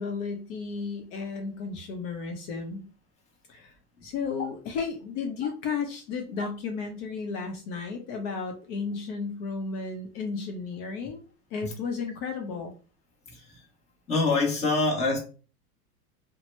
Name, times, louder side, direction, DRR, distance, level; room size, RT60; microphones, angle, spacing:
voice 1, 0.0-2.8 3.5-3.7 4.0-12.7, left 5 dB, 50° left, 0.7 m, -33 dB
voice 2, 13.3-13.7 14.1-15.2, left 3 dB, 15° left, 0.9 m, -25 dB
2.8 x 2.2 x 3.0 m
supercardioid pair, 125°, 47 cm